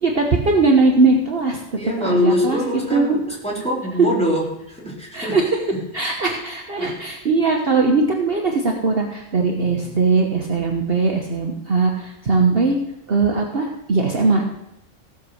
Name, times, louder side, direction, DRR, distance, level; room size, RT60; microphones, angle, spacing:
voice 1, 0.0-1.6 2.0-2.6 2.9-3.2 5.1-5.5 5.9-12.8 13.1-14.4, right 3 dB, 45° right, 1 dB, 1.4 m, -19 dB
voice 2, 1.7-5.4 5.7-5.8 6.8-7.0 9.6-10.1, left 1 dB, 5° left, -4 dB, 3.4 m, -24 dB
16.0 x 6.3 x 6.4 m, 0.84 s
omnidirectional pair, 1.4 m